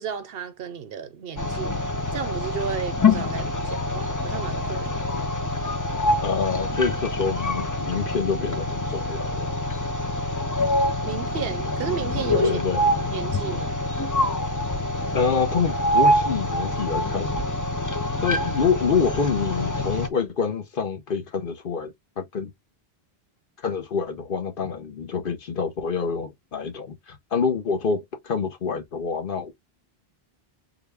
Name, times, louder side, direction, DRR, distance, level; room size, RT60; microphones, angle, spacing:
voice 1, 0.0-5.0 11.0-12.6 13.1-13.8, right 8 dB, 70° right, 0.9 m, -33 dB
sound 1, 1.4-20.1, left 1 dB, 25° left, 0.4 m, -25 dB
voice 2, 6.2-9.5 12.4-12.8 15.1-17.5 18.2-22.5 23.6-29.5, left 5 dB, 60° left, 1.0 m, -27 dB
3.9 x 2.2 x 3.4 m
omnidirectional pair, 1.0 m